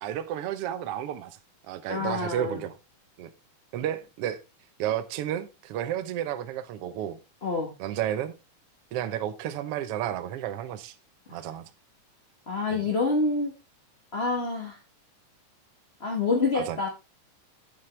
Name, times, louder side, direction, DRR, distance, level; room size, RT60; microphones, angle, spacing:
voice 1, 0.0-1.4 1.7-2.7 3.2-3.3 3.7-4.4 4.8-7.2 7.8-8.3 8.9-10.9 11.3-11.7 12.7-12.9 16.5-16.9, right 11 dB, 75° right, 1.3 m, -32 dB
voice 2, 1.9-2.6 7.4-7.7 11.3-11.4 12.5-13.5 14.1-14.8 16.0-16.9, left 3 dB, 30° left, 1.2 m, -27 dB
9.4 x 7.2 x 3.2 m
omnidirectional pair, 3.6 m